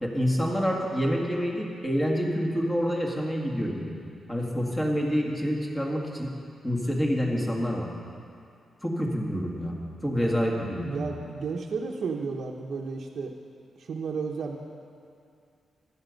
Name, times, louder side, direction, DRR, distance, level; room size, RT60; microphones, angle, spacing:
voice 1, 0.0-3.9 4.3-6.3 6.6-7.9 8.8-9.8 10.0-11.1, equal, 10° left, -1 dB, 2.0 m, -27 dB
voice 2, 10.8-13.3 13.8-14.6, right 5 dB, 60° right, -2 dB, 1.0 m, -33 dB
15.5 x 12.5 x 5.3 m, 2.5 s
wide cardioid pair, 135°, 0 cm